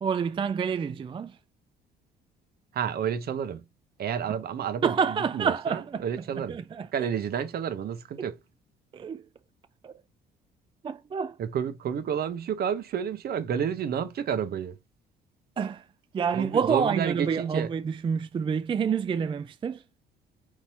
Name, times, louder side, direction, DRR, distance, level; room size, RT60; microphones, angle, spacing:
voice 1, 0.0-1.4 4.8-6.0 6.5-7.1 8.9-9.2 9.8-9.9 10.8-11.4 15.6-15.9 16.1-19.8, right 6 dB, 25° right, 0.4 m, -28 dB
voice 2, 2.7-3.6 4.0-4.9 5.3-6.6 6.9-8.3 11.4-14.8 16.3-17.7, right 8 dB, 50° right, 0.8 m, -30 dB
4.0 x 3.1 x 4.1 m
hypercardioid pair, 55°, 20 cm